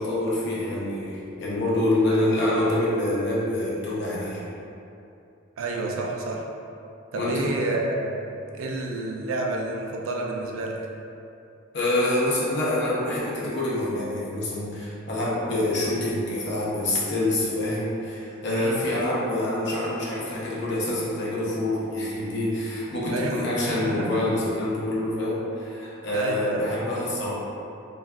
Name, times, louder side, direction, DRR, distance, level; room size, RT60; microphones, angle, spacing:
voice 1, 0.0-4.4 7.1-7.5 11.7-27.3, left 1 dB, 60° left, -6 dB, 0.6 m, -26 dB
voice 2, 5.6-6.4 7.1-8.1 8.5-10.8 18.5-18.9 23.1-23.3 23.8-24.1 26.1-26.7, right 2 dB, 85° right, -1 dB, 0.4 m, -29 dB
2.4 x 2.3 x 3.4 m, 2.7 s
head